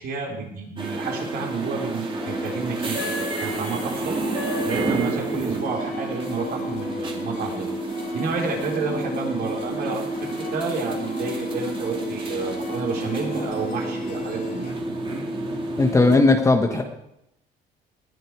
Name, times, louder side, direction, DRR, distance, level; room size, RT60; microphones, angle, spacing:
voice 1, 0.0-7.7 8.1-14.6, right 4 dB, 65° right, 0 dB, 4.2 m, -30 dB
sound 1, 0.8-16.2, right 2 dB, 30° right, 2.8 m, -29 dB
sound 2, 2.2-14.7, left 2 dB, 55° left, 4.0 m, -38 dB
voice 2, 15.8-16.8, left 3 dB, 20° left, 4 dB, 1.2 m, -17 dB
19.0 x 10.0 x 4.8 m, 0.81 s
cardioid pair, 110°, 17 cm